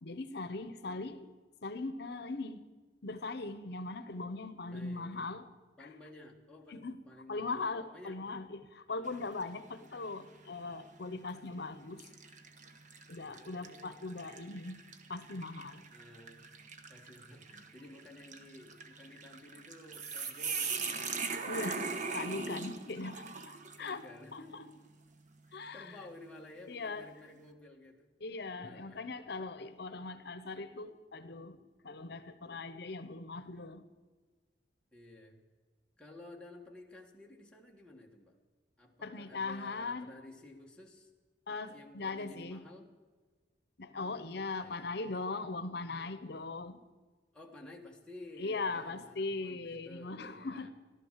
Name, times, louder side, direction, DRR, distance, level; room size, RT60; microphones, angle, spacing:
voice 1, 0.0-1.3 1.6-2.6 3.0-5.5 5.8-5.9 6.7-7.0 7.3-12.1 13.1-14.8 15.1-15.9 21.5-23.5 23.8-24.0 24.3-24.7 25.5-25.9 26.7-27.1 28.2-33.8 39.0-40.1 41.5-42.6 43.8-46.8 48.4-50.7, left 3 dB, 65° left, 0.9 m, -40 dB
voice 2, 4.7-5.3 5.8-8.2 8.9-9.2 13.2-14.0 15.9-16.5 16.9-21.1 23.5-24.8 25.5-28.1 28.6-29.0 34.9-35.4 36.0-38.4 38.8-41.1 41.7-42.9 43.9-44.9 47.3-50.7, left 2 dB, 5° left, 1.6 m, -54 dB
sound 1, 9.1-9.5 10.0-10.2 11.1-11.4 12.0-24.0, right 4 dB, 45° right, 1.1 m, -41 dB
15.0 x 12.5 x 7.4 m
head